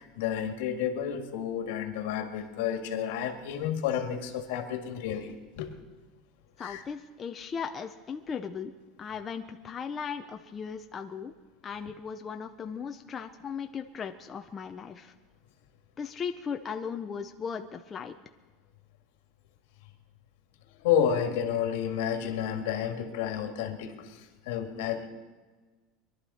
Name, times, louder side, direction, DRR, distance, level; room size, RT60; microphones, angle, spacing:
voice 1, 0.0-5.8 6.6-6.8 20.8-25.1, left 8 dB, 80° left, 5 dB, 1.9 m, -31 dB
voice 2, 6.6-8.7 9.0-11.3 11.6-15.1 16.0-18.2, left 6 dB, 20° left, 5 dB, 0.5 m, -37 dB
22.5 x 11.5 x 4.2 m, 1.3 s
cardioid pair, 170°, 0 cm